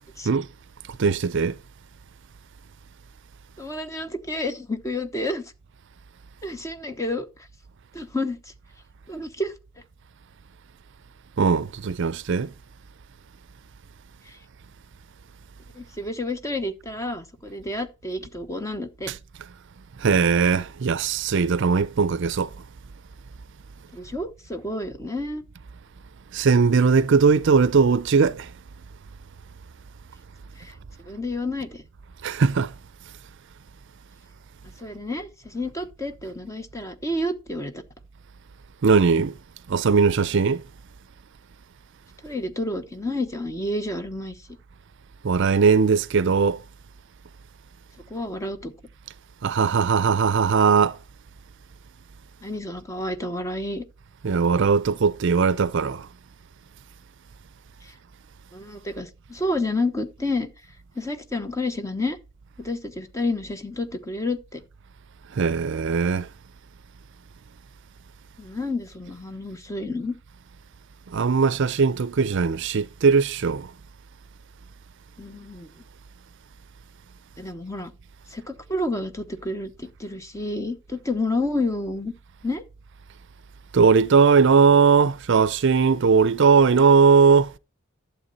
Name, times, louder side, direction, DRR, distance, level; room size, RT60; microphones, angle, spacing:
voice 1, 1.0-1.6 11.4-12.5 19.1-19.2 20.0-22.5 26.3-28.5 32.2-32.7 38.8-39.3 39.7-40.6 45.2-46.6 49.4-51.0 54.2-56.1 65.3-66.3 71.1-73.7 83.7-87.5, right 5 dB, 60° right, 0.5 m, -19 dB
voice 2, 3.6-5.4 6.4-7.3 7.9-8.5 9.1-9.5 14.2-14.4 15.7-19.1 23.9-25.4 30.6-30.7 31.0-31.8 34.8-37.8 42.2-44.4 48.1-48.7 52.4-53.8 57.8-57.9 58.5-60.5 60.9-62.2 62.6-64.6 68.4-70.1 75.2-75.7 77.4-77.9 78.3-82.1 82.4-82.6, left 2 dB, 15° left, 1.0 m, -30 dB
12.0 x 7.2 x 4.0 m
head